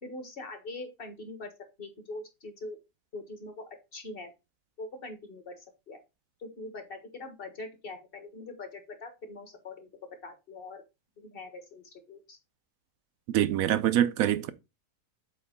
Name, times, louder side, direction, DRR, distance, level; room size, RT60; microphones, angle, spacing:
voice 1, 0.0-1.5 1.8-2.8 3.1-4.3 4.8-6.0 6.4-9.9 10.2-10.8 11.2-12.4, left 2 dB, 40° left, 1.6 m, -43 dB
voice 2, 13.3-14.5, right 11 dB, 70° right, 0.9 m, -25 dB
7.8 x 3.1 x 5.1 m
omnidirectional pair, 1.6 m